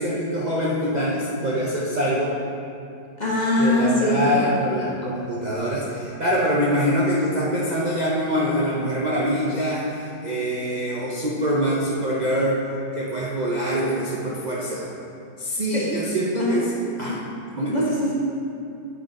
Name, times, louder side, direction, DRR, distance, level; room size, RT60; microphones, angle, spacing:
voice 1, 0.0-2.4 3.6-12.6 13.0-14.9 15.4-16.7 17.0-17.2 17.6-17.9, equal, 65° right, -5 dB, 0.4 m, -24 dB
voice 2, 3.2-4.5 15.7-16.0 16.4-16.6 17.7-18.1, left 1 dB, 30° left, -5 dB, 1.1 m, -22 dB
7.8 x 6.5 x 4.1 m, 2.5 s
omnidirectional pair, 1.9 m